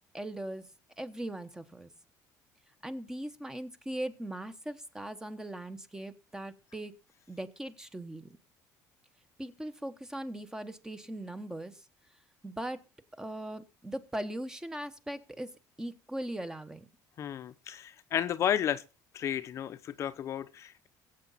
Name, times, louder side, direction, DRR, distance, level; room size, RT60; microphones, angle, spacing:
voice 1, 0.1-0.7 1.0-1.9 2.8-6.9 7.3-8.3 9.4-11.8 12.4-12.8 13.2-15.5 15.8-16.9, right 1 dB, 10° right, 1.1 m, -39 dB
voice 2, 17.2-18.8 19.1-20.9, left 10 dB, 45° left, 0.8 m, -32 dB
21.5 x 8.4 x 4.1 m
cardioid pair, 140°, 7 cm